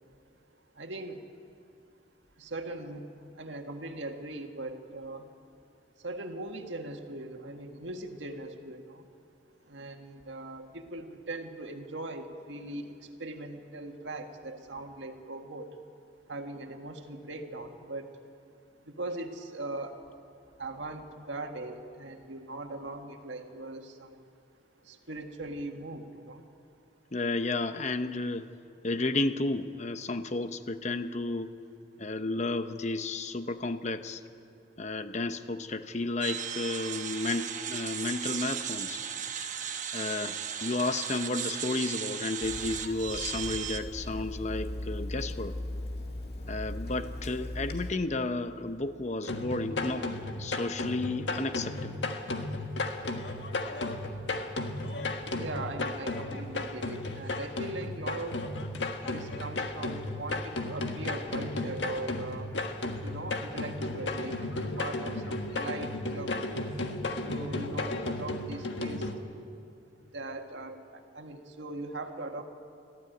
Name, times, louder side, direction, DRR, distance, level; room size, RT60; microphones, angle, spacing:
voice 1, 0.8-1.2 2.4-3.0 3.4-5.3 6.0-9.0 9.7-15.7 16.3-18.1 18.9-20.0 20.6-24.2 24.9-26.4 55.3-58.3 59.1-62.5 63.0-66.4 67.3-69.1 70.1-72.4, right 2 dB, 85° right, 4 dB, 1.8 m, -40 dB
voice 2, 27.1-28.5 28.8-31.5 32.0-34.2 34.8-39.0 39.9-40.4 40.6-45.5 46.5-50.1 50.4-52.0, left 2 dB, 40° left, 10 dB, 0.8 m, -32 dB
sound 1, 36.2-43.8, right 8 dB, 45° right, 1.1 m, -36 dB
Water tap faucet / Sink (filling or washing), 42.4-47.9, left 1 dB, 55° left, 2.3 m, -38 dB
sound 2, 49.3-69.1, left 2 dB, 75° left, 1.6 m, -34 dB
24.5 x 14.0 x 9.2 m, 2.5 s
head